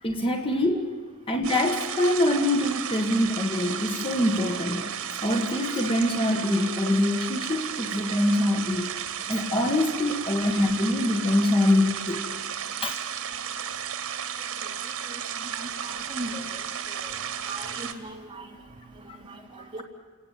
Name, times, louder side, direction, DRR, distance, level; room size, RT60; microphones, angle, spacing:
voice 1, 0.0-0.9 1.3-4.9 5.2-12.3 12.8-13.0 19.6-19.8, left 1 dB, 25° left, 4 dB, 1.8 m, -24 dB
sound 1, 1.4-17.9, right 8 dB, 80° right, 2.0 m, -34 dB
voice 2, 15.8-16.4 17.0-17.1 17.5-18.4 19.5-19.8, right 2 dB, 25° right, 0 dB, 3.7 m, -37 dB
29.5 x 18.0 x 9.4 m, 1.5 s
head